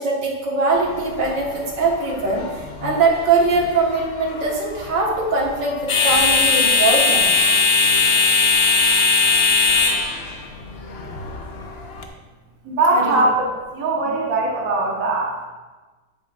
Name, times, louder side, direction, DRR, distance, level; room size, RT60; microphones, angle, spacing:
voice 1, 0.0-5.7 6.0-7.3 11.2-11.3 12.9-13.1, right 3 dB, 80° right, -2 dB, 2.1 m, -21 dB
sound 1, 0.7-12.1, left 4 dB, 50° left, 0.7 m, -20 dB
voice 2, 12.6-15.3, right 2 dB, 55° right, -2 dB, 1.5 m, -20 dB
11.0 x 8.2 x 2.4 m, 1.3 s
omnidirectional pair, 1.9 m